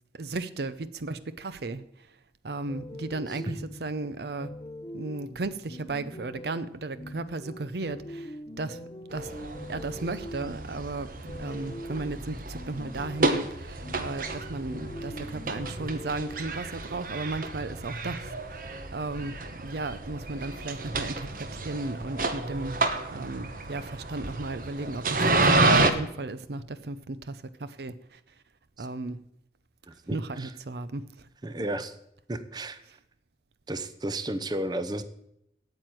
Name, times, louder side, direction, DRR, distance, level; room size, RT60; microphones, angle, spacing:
voice 1, 0.2-2.1 2.4-4.5 4.9-8.8 9.1-22.8 23.1-28.2 28.8-29.2 30.1-31.0, right 3 dB, 65° right, 0.6 m, -35 dB
sound 1, 2.7-16.4, left 1 dB, 25° left, 0.7 m, -43 dB
sound 2, 9.1-25.9, right 2 dB, 50° right, 1.0 m, -30 dB
voice 2, 29.9-30.5 31.4-32.0 32.3-32.8 33.7-35.0, right 1 dB, 25° right, 0.7 m, -33 dB
9.0 x 7.9 x 8.9 m
head